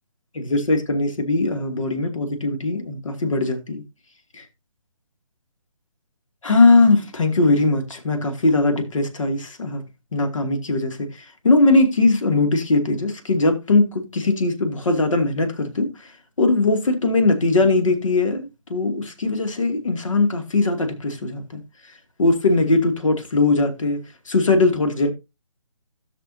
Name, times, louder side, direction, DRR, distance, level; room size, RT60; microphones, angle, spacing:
voice 1, 0.3-3.8 4.3-4.5 6.4-9.8 10.1-11.1 11.4-16.1 16.4-21.6 22.2-25.1, left 3 dB, 65° left, 2.5 m, -20 dB
16.5 x 6.5 x 2.8 m
figure-of-eight pair, 145°, 18 cm